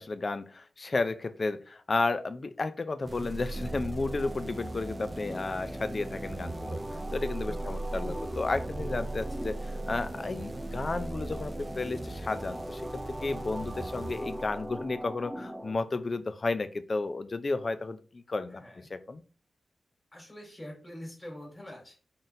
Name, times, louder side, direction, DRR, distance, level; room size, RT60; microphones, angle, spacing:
voice 1, 0.0-18.6 18.9-19.2, left 3 dB, 45° left, 11 dB, 0.4 m, -33 dB
sound 1, 3.0-15.0, right 2 dB, 40° right, 0.3 m, -39 dB
sound 2, 3.5-15.7, equal, 10° right, 0.8 m, -41 dB
voice 2, 7.5-8.0 18.6-18.9 20.1-22.0, equal, 25° left, 0 dB, 2.0 m, -45 dB
4.1 x 3.7 x 2.6 m, 0.39 s
cardioid pair, 55°, 0 cm